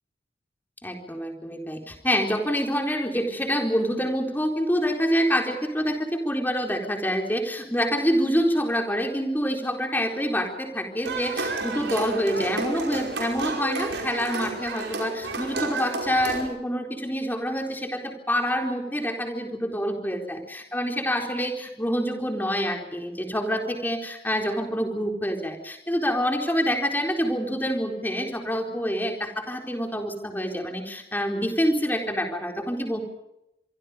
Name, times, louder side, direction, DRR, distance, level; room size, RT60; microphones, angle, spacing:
voice 1, 0.8-33.0, equal, 10° left, 3 dB, 4.2 m, -26 dB
sound 1, 11.0-16.4, right 3 dB, 75° right, 5.4 m, -31 dB
26.0 x 24.0 x 5.2 m, 0.86 s
head